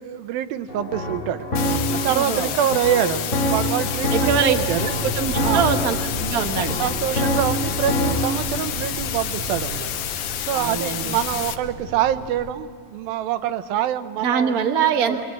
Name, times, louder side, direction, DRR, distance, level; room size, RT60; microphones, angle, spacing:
voice 1, 0.0-1.5 1.9-4.9 5.4-5.7 6.7-9.9 10.4-15.2, right 10 dB, 85° right, 10 dB, 2.7 m, -25 dB
sound 1, 0.7-8.4, equal, 25° left, 3.3 m, -25 dB
sound 2, 1.6-11.6, left 10 dB, 85° left, 2.8 m, -30 dB
voice 2, 2.1-2.5 4.1-4.6 4.9-6.8 10.5-11.2 14.2-15.2, right 7 dB, 60° right, 4 dB, 0.9 m, -23 dB
sound 3, 4.4-12.5, left 1 dB, ahead, 1.7 m, -34 dB
27.0 x 21.0 x 8.7 m, 2.4 s
omnidirectional pair, 4.1 m